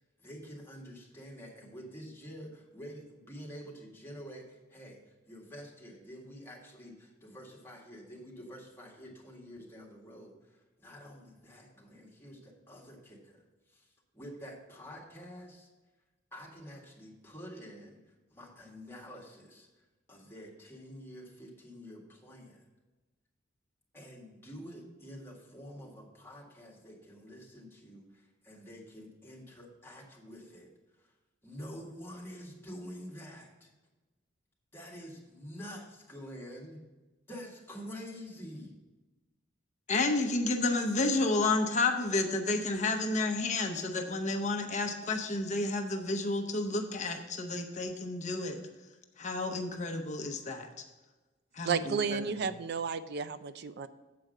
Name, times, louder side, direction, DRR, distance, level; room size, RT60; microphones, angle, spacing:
voice 1, 0.2-13.4 13.7-15.7 16.3-18.0 18.3-19.7 20.1-22.6 23.9-30.7 31.0-31.1 31.4-33.7 34.7-36.8 37.3-38.7, equal, 10° left, -3 dB, 1.8 m, -48 dB
voice 2, 39.9-48.6 49.2-50.7 51.5-52.2, left 2 dB, 40° left, 4 dB, 0.8 m, -31 dB
voice 3, 51.7-53.9, right 5 dB, 55° right, 13 dB, 0.4 m, -32 dB
7.7 x 4.7 x 6.4 m, 1.2 s
head